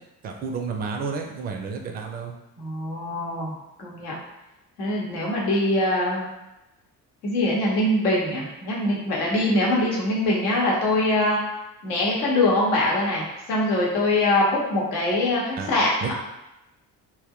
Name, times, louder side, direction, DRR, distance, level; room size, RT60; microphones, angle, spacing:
voice 1, 0.2-2.3 15.6-15.7 16.0-16.1, right 5 dB, 20° right, 3 dB, 0.3 m, -31 dB
voice 2, 2.6-3.5 3.8-4.1 4.8-6.3 7.2-11.4 11.8-16.1, left 1 dB, 75° left, -3 dB, 0.8 m, -23 dB
2.2 x 2.0 x 3.5 m, 0.94 s
figure-of-eight pair, 45°, 49 cm